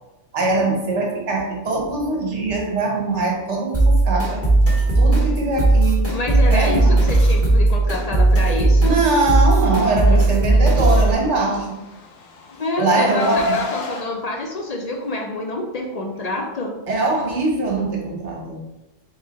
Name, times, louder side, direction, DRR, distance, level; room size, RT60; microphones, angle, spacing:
voice 1, 0.3-4.4 5.0-6.0 6.5-7.0 8.8-11.8 12.8-13.7 16.9-18.6, right 2 dB, 65° right, 0 dB, 1.2 m, -22 dB
sound 1, 3.7-11.1, right 2 dB, 10° left, 1.1 m, -17 dB
voice 2, 6.1-9.0 12.5-16.7, left 2 dB, 55° left, 1 dB, 0.4 m, -27 dB
Car, 11.5-14.0, left 4 dB, 80° left, 1.0 m, -28 dB
3.7 x 3.1 x 3.9 m, 0.99 s
omnidirectional pair, 1.3 m